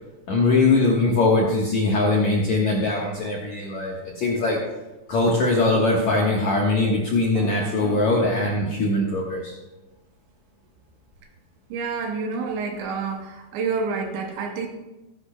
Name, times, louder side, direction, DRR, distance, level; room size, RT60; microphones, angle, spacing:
voice 1, 0.3-4.6 5.1-9.5, left 2 dB, 75° left, -3 dB, 1.7 m, -21 dB
sound 1, 7.3-8.0, right 2 dB, 70° right, 4.2 m, -33 dB
voice 2, 11.7-14.7, right 4 dB, 85° right, 4 dB, 3.1 m, -28 dB
17.5 x 9.9 x 2.2 m, 1.1 s
omnidirectional pair, 5.2 m